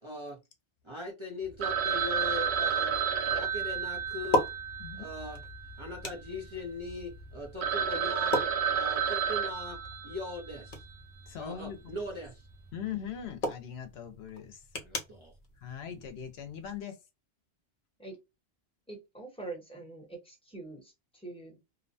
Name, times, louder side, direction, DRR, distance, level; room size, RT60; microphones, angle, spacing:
voice 1, 0.0-0.4 0.8-3.0 3.2-4.5 5.0-5.4 5.8-9.8 10.0-10.8 11.4-12.5 14.8-15.3, left 2 dB, 30° right, 0.7 m, -40 dB
sound 1, 1.6-16.8, left 1 dB, 45° left, 0.8 m, -40 dB
Telephone, 1.6-6.0 6.2-6.3 6.9-7.0 7.3-7.4 7.6-10.6, right 7 dB, 80° right, 0.9 m, -31 dB
voice 2, 4.8-5.1 11.3-11.9 12.7-14.6 15.6-17.0, left 9 dB, 75° left, 0.9 m, -40 dB
voice 3, 18.9-21.6, right 3 dB, 5° left, 1.0 m, -44 dB
2.7 x 2.1 x 2.5 m
omnidirectional pair, 1.1 m